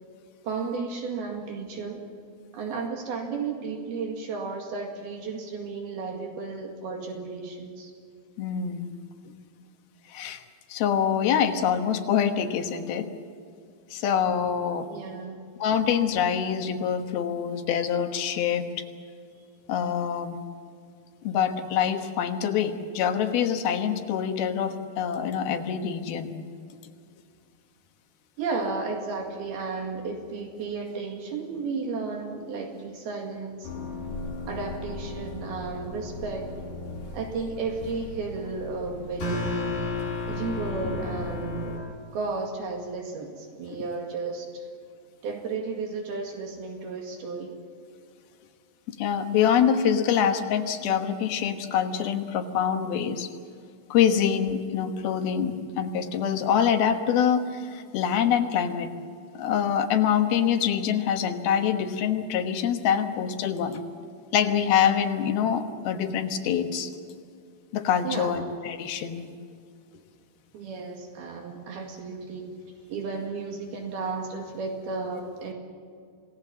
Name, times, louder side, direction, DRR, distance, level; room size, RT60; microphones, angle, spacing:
voice 1, 0.4-2.1 2.5-7.9 14.9-15.4 28.4-33.7 34.5-36.5 37.1-39.8 40.3-41.8 42.1-44.7 45.2-47.6 68.0-68.5 70.5-72.5 72.9-75.5, right 4 dB, 70° right, 3 dB, 4.0 m, -33 dB
voice 2, 8.4-8.9 10.1-10.4 10.7-13.1 13.9-14.9 15.6-18.7 19.7-20.4 21.2-26.3 43.7-43.8 48.9-53.3 53.9-58.9 59.3-63.8 64.3-66.9 67.7-69.3, left 8 dB, 75° left, 6 dB, 3.1 m, -25 dB
sound 1, 33.6-41.8, left 2 dB, 55° left, 8.1 m, -34 dB
27.5 x 18.5 x 7.5 m, 2.3 s
omnidirectional pair, 4.6 m